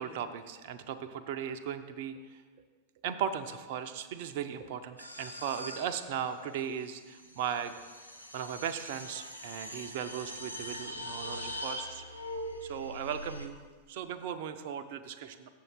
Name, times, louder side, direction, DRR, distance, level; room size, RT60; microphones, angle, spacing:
voice 1, 0.0-2.1 3.0-7.7 8.3-12.0 12.6-13.6 13.9-15.5, right 8 dB, 50° right, 9 dB, 0.5 m, -37 dB
sound 1, 5.0-13.5, equal, 90° left, 0.7 m, -42 dB
7.0 x 6.7 x 5.7 m, 1.5 s
figure-of-eight pair, 90°, 0 cm